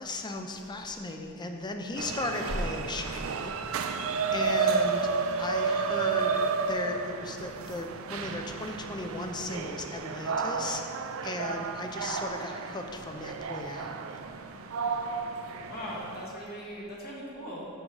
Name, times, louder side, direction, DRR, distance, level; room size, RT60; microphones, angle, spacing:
voice 1, 0.0-5.1 5.4-10.8 11.2-14.0, left 2 dB, 20° left, 4 dB, 0.5 m, -36 dB
sound 1, 2.0-16.3, right 5 dB, 85° right, 0.4 m, -32 dB
voice 2, 15.7-17.7, equal, 50° left, -4 dB, 1.2 m, -39 dB
6.4 x 6.0 x 4.8 m, 2.5 s
head